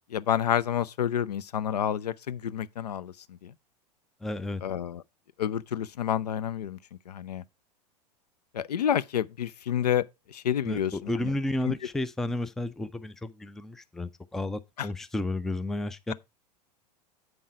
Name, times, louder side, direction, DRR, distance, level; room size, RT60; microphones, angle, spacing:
voice 1, 0.1-3.5 4.6-5.0 5.4-6.8 7.1-7.4 8.5-10.9 11.2-11.3 11.6-11.7 14.8-14.9, left 9 dB, 70° left, 0.4 m, -29 dB
voice 2, 4.2-4.6 10.6-16.1, left 1 dB, ahead, 0.3 m, -32 dB
7.9 x 5.4 x 4.6 m
figure-of-eight pair, 90°, 21 cm